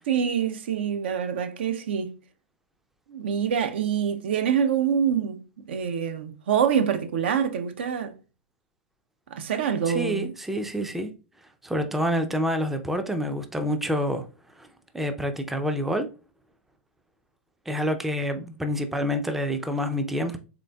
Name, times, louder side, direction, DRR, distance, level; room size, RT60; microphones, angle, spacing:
voice 1, 0.1-2.1 3.1-8.1 9.3-10.3, right 8 dB, 65° right, 0.6 m, -25 dB
voice 2, 9.9-11.1 11.6-14.3 14.6-14.7 14.9-16.1 17.7-20.4, equal, 5° right, 0.4 m, -27 dB
3.8 x 3.5 x 2.2 m
hypercardioid pair, 105°, 6 cm